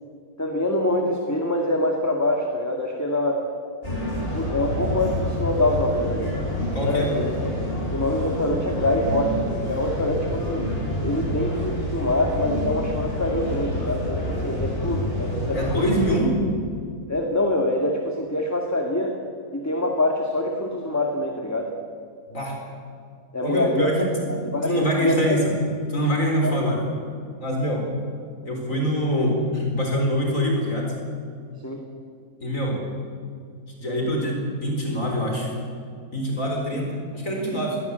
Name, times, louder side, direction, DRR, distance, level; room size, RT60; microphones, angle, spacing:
voice 1, 0.4-3.4 4.3-6.3 6.8-7.5 7.9-10.7 11.0-15.8 17.1-19.2 19.5-21.7 23.3-23.9 24.3-25.4 26.4-26.6 31.6-31.8, left 1 dB, 10° left, 1 dB, 2.0 m, -25 dB
sound 1, 3.8-16.1, left 1 dB, 35° left, 8.1 m, -28 dB
voice 2, 6.7-7.1 15.5-16.4 22.3-22.6 23.4-24.3 24.6-25.4 25.9-26.8 27.4-27.9 28.4-31.0 32.4-32.8 33.8-35.5 36.1-37.8, equal, 55° left, 0 dB, 4.7 m, -24 dB
21.5 x 17.5 x 8.2 m, 2.3 s
omnidirectional pair, 1.7 m